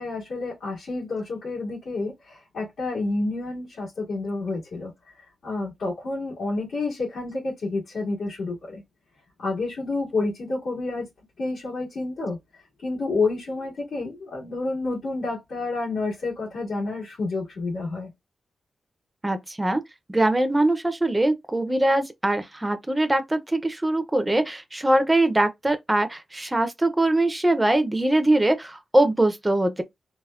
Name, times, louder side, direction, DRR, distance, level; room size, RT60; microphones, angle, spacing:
voice 1, 0.0-5.1 5.4-8.8 9.4-11.1 11.4-12.4 12.8-18.1, left 3 dB, 85° left, 1.8 m, -29 dB
voice 2, 19.2-19.8 20.1-29.8, right 1 dB, 10° right, 0.4 m, -22 dB
3.4 x 2.0 x 2.3 m
wide cardioid pair, 170°, 0 cm